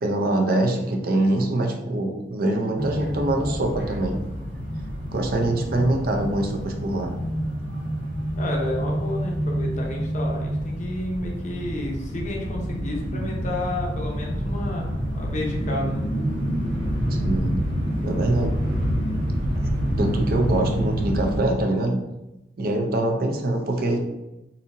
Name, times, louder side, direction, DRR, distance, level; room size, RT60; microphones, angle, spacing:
voice 1, 0.0-4.2 5.1-7.1 17.2-17.6 18.0-18.5 20.0-22.0 22.6-24.0, right 1 dB, 50° right, 3 dB, 0.5 m, -24 dB
sound 1, 2.8-21.4, equal, 75° right, 1.5 m, -27 dB
voice 2, 8.4-14.9 15.1-16.0, left 1 dB, 40° left, 0 dB, 0.6 m, -31 dB
4.1 x 2.7 x 2.6 m, 0.96 s
head